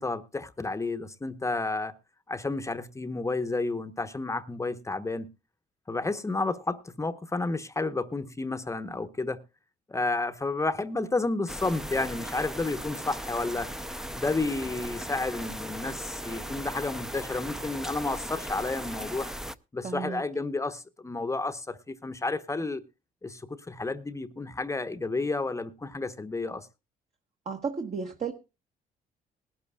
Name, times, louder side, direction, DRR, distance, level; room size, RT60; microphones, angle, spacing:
voice 1, 0.0-1.9 2.3-5.3 5.9-9.4 9.9-13.7 14.1-19.3 19.7-22.8 23.2-26.7, left 3 dB, 20° left, 0.9 m, -31 dB
sound 1, 11.5-19.5, equal, 5° right, 0.6 m, -38 dB
voice 2, 19.8-20.2 27.4-28.3, right 5 dB, 45° right, 1.4 m, -33 dB
20.5 x 12.5 x 2.3 m
cardioid pair, 95°, 16 cm